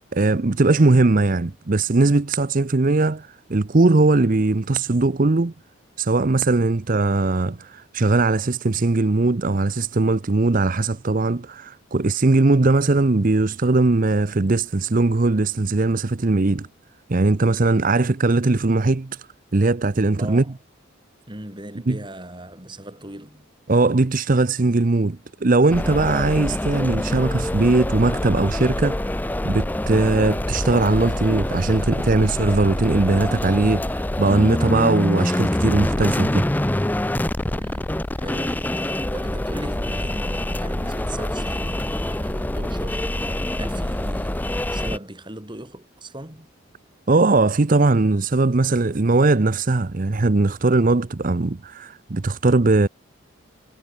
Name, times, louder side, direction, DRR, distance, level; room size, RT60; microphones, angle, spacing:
voice 1, 0.1-5.5 6.0-16.7 17.1-19.3 19.5-20.4 21.9-22.0 23.7-36.5 47.1-52.9, right 3 dB, 40° right, 0.6 m, -20 dB
voice 2, 20.2-20.6 21.3-23.5 37.5-43.2 43.5-46.5, right 1 dB, 25° right, 3.7 m, -39 dB
sound 1, 25.7-45.0, left 1 dB, 10° left, 0.4 m, -25 dB
head